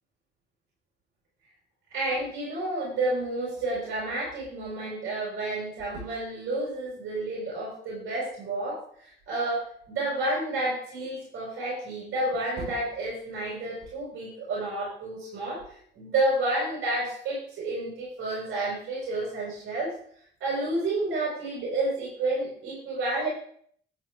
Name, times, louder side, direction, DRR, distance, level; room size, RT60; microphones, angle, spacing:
voice 1, 1.9-19.9 20.4-23.3, right 2 dB, 75° right, -5 dB, 5.4 m, -30 dB
11.0 x 9.0 x 3.7 m, 0.62 s
cardioid pair, 90°, 20 cm